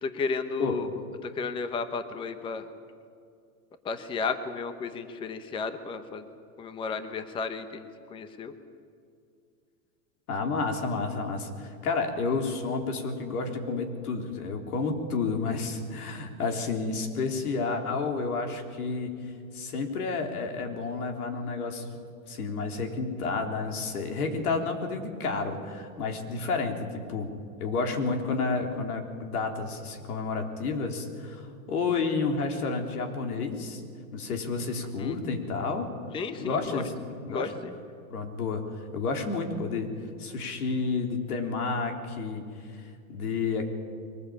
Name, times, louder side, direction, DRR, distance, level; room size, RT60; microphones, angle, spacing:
voice 1, 0.0-0.9 1.2-2.6 3.8-6.2 6.6-8.5 35.0-35.2 36.1-36.8 37.3-37.7, left 4 dB, 10° left, 10 dB, 0.8 m, -33 dB
voice 2, 10.3-19.1 19.5-27.3 27.6-33.8 34.1-35.9 36.4-37.5 38.1-38.6 38.9-39.9 40.2-42.4 42.7-43.7, left 4 dB, 85° left, 5 dB, 3.7 m, -30 dB
22.5 x 19.5 x 8.7 m, 2.3 s
supercardioid pair, 155°, 44 cm